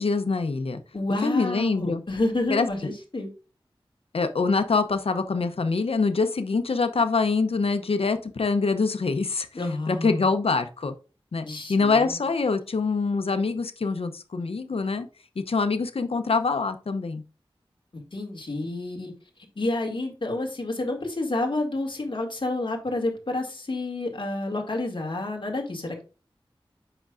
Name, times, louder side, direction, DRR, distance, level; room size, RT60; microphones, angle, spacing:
voice 1, 0.0-0.8 1.2-2.0 2.5-2.9 4.1-9.5 9.9-10.9 11.3-15.1 15.5-17.2, left 4 dB, 85° left, 9 dB, 0.7 m, -25 dB
voice 2, 0.9-3.3 9.5-10.3 11.4-12.2 17.9-19.1 19.6-26.1, left 2 dB, 60° left, 2 dB, 2.1 m, -29 dB
7.9 x 5.9 x 2.5 m, 0.34 s
wide cardioid pair, 55°, 10 cm